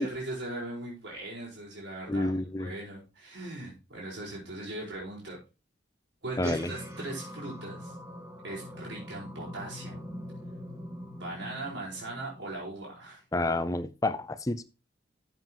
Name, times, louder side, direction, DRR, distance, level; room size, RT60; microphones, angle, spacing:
voice 1, 0.0-5.4 6.2-8.0 8.4-10.0 11.2-13.2, right 2 dB, 75° right, 5.0 m, -39 dB
voice 2, 2.1-2.7 6.4-6.7 13.3-14.6, left 2 dB, 20° left, 0.5 m, -29 dB
sound 1, 6.3-13.0, equal, 15° right, 2.4 m, -43 dB
13.0 x 7.6 x 3.0 m
head